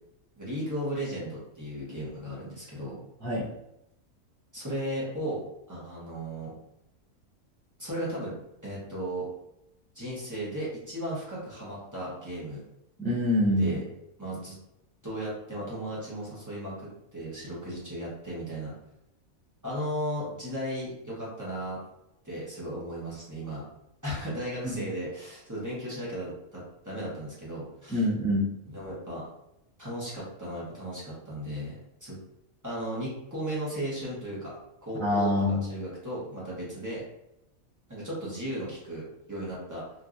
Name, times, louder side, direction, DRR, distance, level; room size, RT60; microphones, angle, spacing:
voice 1, 0.4-3.0 4.5-6.5 7.8-8.3 8.6-9.3 9.9-12.6 13.6-13.8 14.2-14.6 15.0-18.7 19.6-21.8 22.2-23.6 24.0-28.0 28.6-29.3 29.8-31.7 32.0-32.2 32.6-34.5 34.8-37.0 37.9-39.8, right 1 dB, 15° right, -7 dB, 0.9 m, -35 dB
voice 2, 13.0-13.7 24.7-24.8 27.9-28.5 35.0-35.6, left 1 dB, 5° left, -10 dB, 0.5 m, -25 dB
3.0 x 2.6 x 2.5 m, 0.84 s
omnidirectional pair, 1.5 m